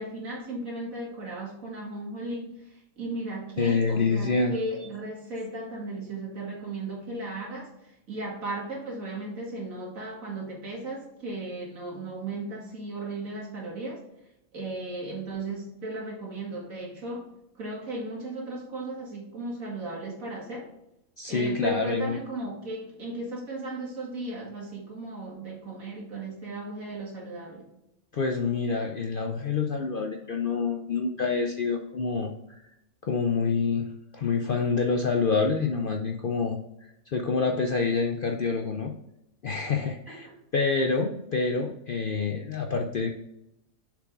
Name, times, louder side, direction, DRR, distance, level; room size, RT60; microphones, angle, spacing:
voice 1, 0.0-14.0 14.5-17.3 17.6-20.7 21.3-27.7 40.1-40.4, right 2 dB, 70° right, -2 dB, 2.4 m, -36 dB
voice 2, 3.6-4.5 21.2-22.2 28.1-32.6 33.0-38.9 39.4-40.3 40.5-43.1, left 4 dB, 55° left, 3 dB, 0.6 m, -27 dB
6.8 x 4.9 x 3.6 m, 0.85 s
omnidirectional pair, 1.5 m